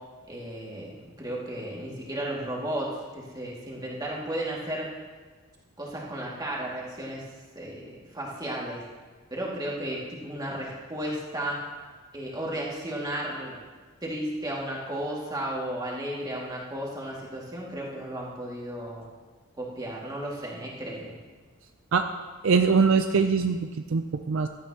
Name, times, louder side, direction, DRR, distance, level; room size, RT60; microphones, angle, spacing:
voice 1, 0.3-2.9 3.1-4.9 5.8-7.2 7.6-8.8 9.3-11.6 12.1-13.6 14.0-19.0 19.6-21.1, right 1 dB, 20° right, -4 dB, 2.2 m, -34 dB
voice 2, 22.4-24.0 24.3-24.5, right 5 dB, 60° right, 7 dB, 0.5 m, -22 dB
15.5 x 12.5 x 2.9 m, 1.4 s
head